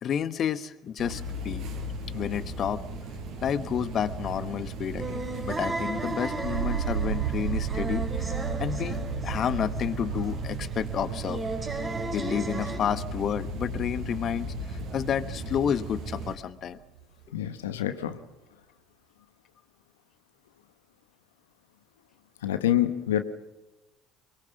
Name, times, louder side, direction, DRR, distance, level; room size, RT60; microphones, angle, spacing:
voice 1, 0.0-1.7 2.1-2.8 3.4-5.2 5.5-11.4 12.1-16.8, left 8 dB, 50° left, 13 dB, 1.1 m, -30 dB
sound 1, 1.0-16.4, right 1 dB, 65° right, 5.0 m, -36 dB
sound 2, 5.0-12.8, right 2 dB, 30° right, 3.9 m, -35 dB
sound 3, 6.4-16.4 16.7-17.4, right 11 dB, 85° right, 0.8 m, -35 dB
voice 2, 17.3-18.2 22.4-23.2, left 11 dB, 85° left, 10 dB, 1.1 m, -26 dB
23.5 x 20.5 x 7.0 m, 1.1 s
hypercardioid pair, 60°, 0 cm